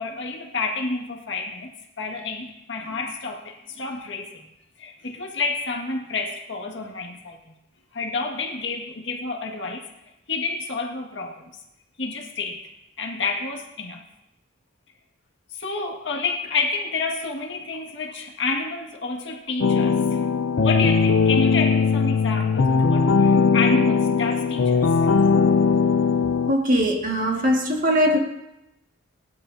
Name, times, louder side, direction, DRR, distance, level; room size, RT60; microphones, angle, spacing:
voice 1, 0.0-4.4 4.8-7.4 7.9-9.9 10.3-11.4 12.0-12.6 13.0-14.0 15.6-20.2 20.6-24.8, left 4 dB, 60° left, 2.0 m, -29 dB
sound 1, 19.6-26.5, left 5 dB, 75° left, 0.5 m, -19 dB
voice 2, 26.5-28.2, equal, 40° right, 2.1 m, -21 dB
19.5 x 12.5 x 2.8 m
head